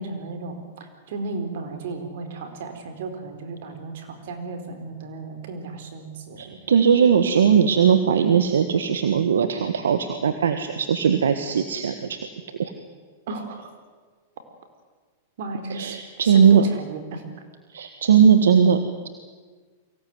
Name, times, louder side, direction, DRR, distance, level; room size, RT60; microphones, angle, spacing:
voice 1, 0.0-6.6 6.8-7.0 13.3-13.7 15.4-17.2, right 3 dB, 70° right, 7 dB, 4.4 m, -34 dB
voice 2, 6.4-12.2 12.6-12.7 15.7-16.7 17.7-19.1, right 7 dB, 90° right, 9 dB, 1.5 m, -19 dB
23.5 x 17.0 x 9.6 m, 1.5 s
hypercardioid pair, 125°, 0 cm